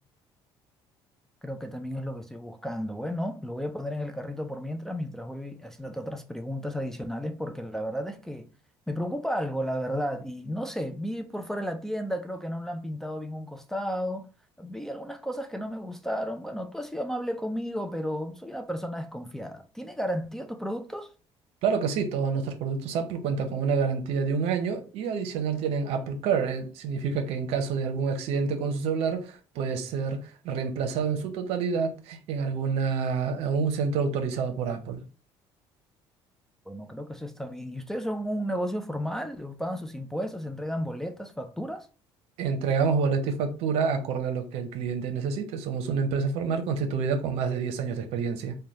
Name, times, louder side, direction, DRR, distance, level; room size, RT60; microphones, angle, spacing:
voice 1, 1.4-8.5 8.9-14.3 14.6-21.1 36.7-41.9, equal, 5° left, 0.3 m, -33 dB
voice 2, 21.6-35.0 42.4-48.6, right 5 dB, 75° right, 0.7 m, -28 dB
3.2 x 2.2 x 4.0 m
cardioid pair, 125°, 10 cm